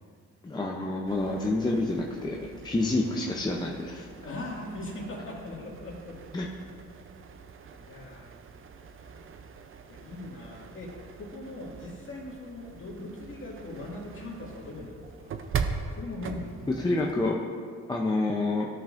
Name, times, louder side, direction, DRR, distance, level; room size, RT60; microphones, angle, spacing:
voice 1, 0.4-2.4 2.6-4.1 6.3-6.5 16.8-17.4 17.9-18.7, left 2 dB, 15° left, -2 dB, 0.6 m, -28 dB
sound 1, 1.1-17.3, right 5 dB, 45° right, 0.6 m, -41 dB
voice 2, 2.7-3.2 4.2-6.2 7.8-8.4 9.9-15.3 15.9-16.7, left 2 dB, 40° left, -3 dB, 2.1 m, -40 dB
13.0 x 5.4 x 2.6 m, 2.1 s
cardioid pair, 90°, 30 cm